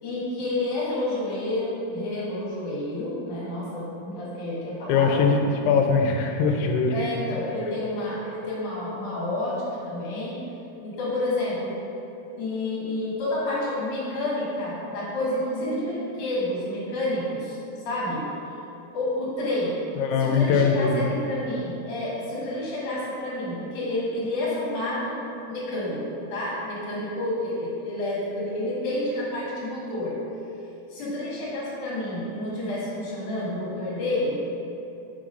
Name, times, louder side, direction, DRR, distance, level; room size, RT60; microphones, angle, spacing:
voice 1, 0.0-5.2 5.6-5.8 6.9-10.4 10.8-11.7 12.4-17.6 17.8-18.3 18.9-19.7 20.2-25.2 25.5-30.2 30.9-34.4, left 1 dB, 55° left, -7 dB, 2.7 m, -29 dB
voice 2, 4.9-6.9 20.0-21.0, left 5 dB, 90° left, 3 dB, 2.7 m, -21 dB
7.1 x 3.8 x 5.2 m, 2.8 s
omnidirectional pair, 4.7 m